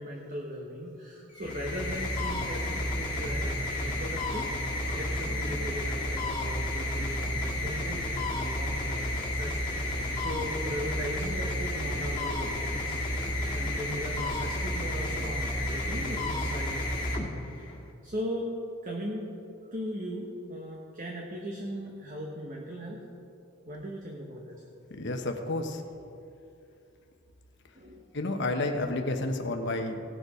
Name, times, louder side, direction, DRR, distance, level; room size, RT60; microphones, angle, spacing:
voice 1, 0.0-4.5 4.9-17.2 17.5-17.7 18.0-18.6 18.8-19.3 19.6-23.0 23.7-24.6 27.7-28.0, equal, 35° right, -1 dB, 1.1 m, -38 dB
sound 1, 1.3-17.8, left 1 dB, 20° left, 1.9 m, -31 dB
voice 2, 24.9-25.8 28.1-30.0, left 2 dB, 55° left, 4 dB, 1.0 m, -30 dB
17.5 x 6.8 x 4.9 m, 2.6 s
head